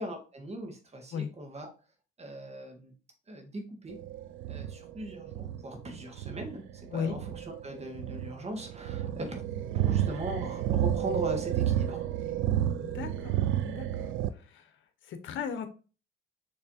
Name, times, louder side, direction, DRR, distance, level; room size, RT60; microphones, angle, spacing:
voice 1, 0.0-1.7 2.2-2.9 3.3-4.0 4.5-12.0, right 1 dB, 30° right, 4 dB, 1.4 m, -39 dB
sound 1, 3.9-14.3, right 11 dB, 80° right, 0.5 m, -31 dB
voice 2, 12.8-13.9 14.5-14.6 15.1-15.7, left 7 dB, 75° left, 9 dB, 0.8 m, -35 dB
5.9 x 3.2 x 2.6 m, 0.35 s
cardioid pair, 90°, 20 cm